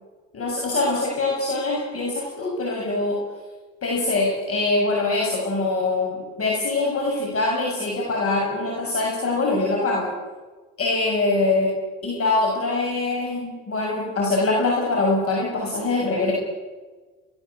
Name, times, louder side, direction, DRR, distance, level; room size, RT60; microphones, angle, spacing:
voice 1, 0.3-3.2 3.8-10.1 10.8-11.8 12.0-16.3, left 2 dB, 45° left, -1 dB, 7.2 m, -23 dB
24.5 x 18.5 x 8.2 m, 1.3 s
supercardioid pair, 80°, 32 cm